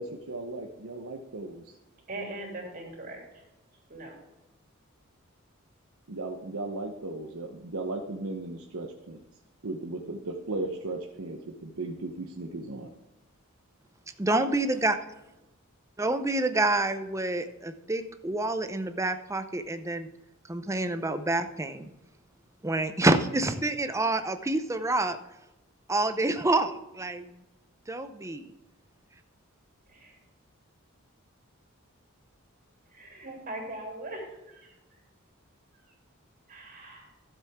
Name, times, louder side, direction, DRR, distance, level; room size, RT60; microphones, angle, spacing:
voice 1, 0.0-1.6 6.1-9.2 9.6-12.9, right 2 dB, 90° right, 2 dB, 1.0 m, -36 dB
voice 2, 2.1-3.4 3.9-4.1 29.9-30.2 32.9-34.2 34.5-34.7 36.5-37.1, right 1 dB, 45° right, -1 dB, 3.2 m, -40 dB
voice 3, 14.2-15.0 16.0-20.1 20.5-21.9 22.6-25.2 25.9-27.2 27.9-28.4, right 2 dB, 15° right, 9 dB, 0.7 m, -27 dB
13.0 x 7.4 x 3.6 m, 0.99 s
head